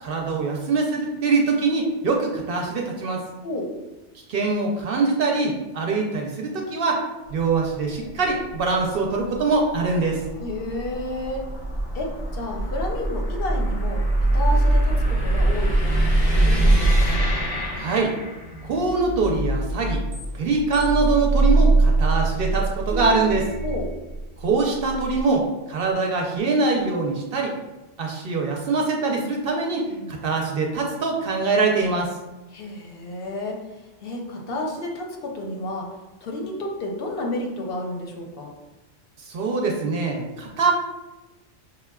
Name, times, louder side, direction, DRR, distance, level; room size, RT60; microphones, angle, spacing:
voice 1, 0.0-3.2 4.3-7.0 7.3-10.2 17.7-18.1 18.6-20.0 20.3-23.5 24.4-27.5 28.0-32.1 39.2-40.7, right 4 dB, 60° right, 0 dB, 0.6 m, -23 dB
voice 2, 3.4-3.7 10.4-11.4 11.9-17.1 23.6-23.9 29.9-30.1 32.5-33.6 34.0-35.9 36.2-38.5, left 1 dB, 60° left, 1 dB, 0.7 m, -31 dB
sound 1, 7.3-18.7, right 1 dB, 25° left, 0.6 m, -23 dB
sound 2, 17.4-25.2, right 2 dB, 90° right, 0.9 m, -24 dB
5.3 x 2.2 x 2.2 m, 1.0 s
omnidirectional pair, 1.2 m